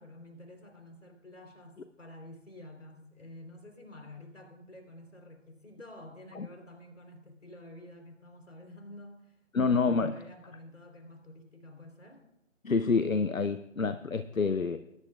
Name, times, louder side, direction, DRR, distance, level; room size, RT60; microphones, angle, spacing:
voice 1, 0.0-9.4 9.6-12.3, left 1 dB, 65° left, 3 dB, 3.7 m, -50 dB
voice 2, 9.5-10.2 12.6-14.8, left 4 dB, 90° left, 11 dB, 0.7 m, -27 dB
20.5 x 10.5 x 2.4 m, 0.90 s
figure-of-eight pair, 150°, 39 cm